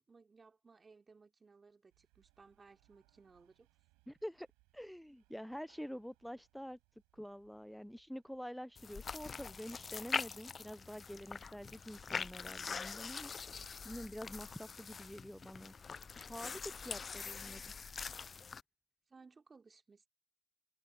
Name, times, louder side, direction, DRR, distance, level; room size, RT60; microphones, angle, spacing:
voice 1, 0.1-3.7 17.4-17.7 19.1-20.1, right 4 dB, 35° right, 3.3 m, -62 dB
sound 1, 1.9-17.1, right 28 dB, 80° right, 5.2 m, -76 dB
voice 2, 4.1-4.5 4.7-6.8 7.1-13.3 13.8-15.7 16.3-17.7, equal, ahead, 0.6 m, -47 dB
sound 2, 8.8-18.6, left 5 dB, 40° left, 0.3 m, -44 dB
hypercardioid pair, 55°, 0 cm